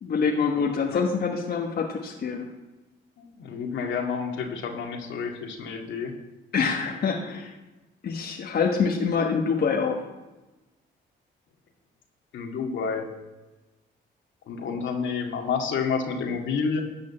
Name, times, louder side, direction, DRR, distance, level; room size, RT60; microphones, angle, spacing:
voice 1, 0.0-2.5 6.5-7.5 8.0-10.0, left 5 dB, 55° left, 1 dB, 1.4 m, -25 dB
voice 2, 3.2-6.1 12.3-13.1 14.5-16.8, left 5 dB, 75° left, 2 dB, 2.1 m, -29 dB
13.5 x 5.2 x 8.6 m, 1.1 s
cardioid pair, 90°, 20 cm